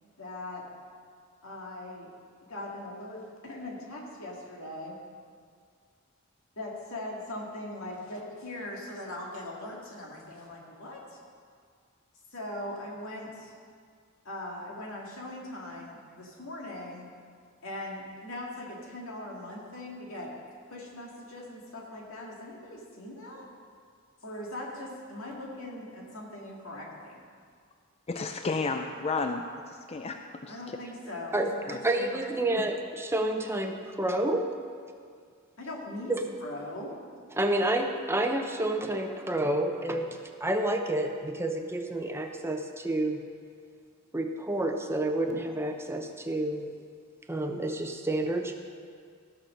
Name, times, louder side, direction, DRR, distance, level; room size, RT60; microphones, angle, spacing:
voice 1, 0.2-0.6 1.4-2.1 2.5-4.9 6.6-11.2 12.3-13.5 14.2-17.1 17.6-20.3 20.7-23.5 24.2-27.2 30.5-32.1 35.6-36.9, left 1 dB, 85° left, -2 dB, 2.1 m, -40 dB
voice 2, 28.1-30.6 31.7-31.8, left 4 dB, 30° left, 6 dB, 0.4 m, -32 dB
voice 3, 31.8-34.4 36.1-36.2 37.3-40.1 40.4-43.2 44.1-46.6 47.3-48.5, right 1 dB, 10° right, 4 dB, 0.6 m, -29 dB
14.5 x 6.1 x 6.5 m, 2.1 s
head